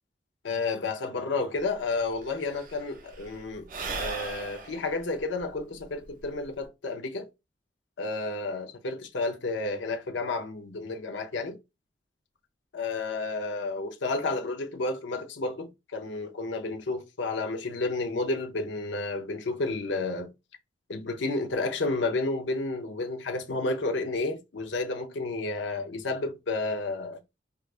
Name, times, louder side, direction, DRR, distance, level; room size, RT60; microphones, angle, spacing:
voice 1, 0.4-7.3 8.0-11.6 12.7-20.3 20.9-27.2, left 3 dB, 85° left, 0.6 m, -31 dB
Sigh / Breathing, 1.6-1.7 1.9-6.7, right 4 dB, 45° right, 0.5 m, -39 dB
4.6 x 2.2 x 2.4 m
head